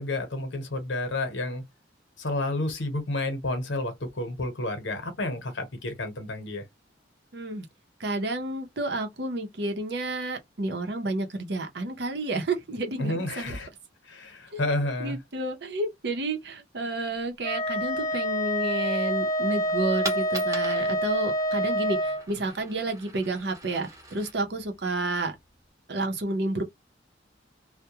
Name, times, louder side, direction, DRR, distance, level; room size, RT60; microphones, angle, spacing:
voice 1, 0.0-1.6 2.2-6.6 13.0-13.7 14.0-15.2, left 2 dB, 75° left, 0.9 m, -30 dB
voice 2, 7.3-7.7 8.0-13.6 14.5-14.6 15.0-25.3 25.9-26.6, right 2 dB, 60° right, 0.7 m, -30 dB
Wind instrument woodwind instrument, 17.4-22.2, equal, 15° left, 0.5 m, -27 dB
Coin (dropping), 20.0-25.7, right 2 dB, 20° right, 0.9 m, -42 dB
2.3 x 2.1 x 2.7 m
head